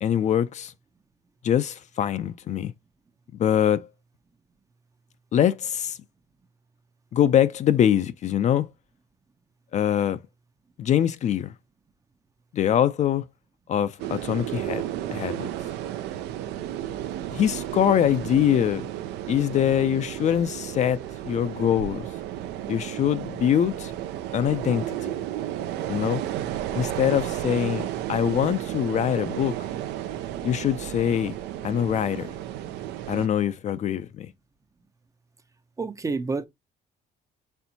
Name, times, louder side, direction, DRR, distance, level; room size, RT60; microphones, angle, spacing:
voice 1, 0.0-0.7 1.4-2.7 3.3-3.9 5.3-6.0 7.1-8.7 9.7-10.2 10.8-11.5 12.5-13.2 13.7-14.8 15.1-15.5 17.3-18.9 19.3-21.0 21.3-22.0 22.7-23.9 24.3-25.2 25.9-26.2 26.7-29.6 30.4-31.3 31.6-32.3 33.1-34.3, left 10 dB, 45° left, 0.4 m, -23 dB
sound 1, 14.0-33.3, right 12 dB, 85° right, 0.5 m, -33 dB
voice 2, 35.8-36.5, right 4 dB, 20° right, 0.5 m, -28 dB
4.3 x 3.4 x 2.7 m
cardioid pair, 110°, 17 cm